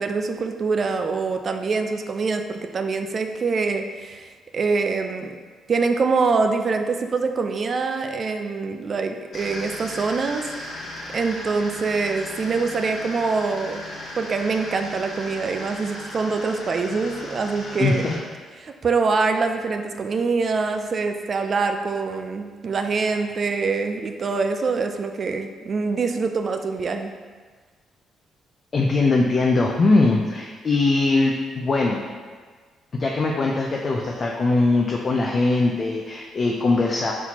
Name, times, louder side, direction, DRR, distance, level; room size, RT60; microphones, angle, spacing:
voice 1, 0.0-5.3 5.7-10.5 10.8-13.8 14.2-18.1 18.6-27.1, right 4 dB, 45° right, 6 dB, 0.3 m, -24 dB
sound 1, 9.3-18.2, left 1 dB, 65° left, 1.1 m, -36 dB
voice 2, 17.8-18.1 28.7-32.0 32.9-37.1, left 3 dB, 40° left, -1 dB, 0.4 m, -21 dB
4.4 x 4.2 x 2.9 m, 1.5 s
cardioid pair, 90°, 0 cm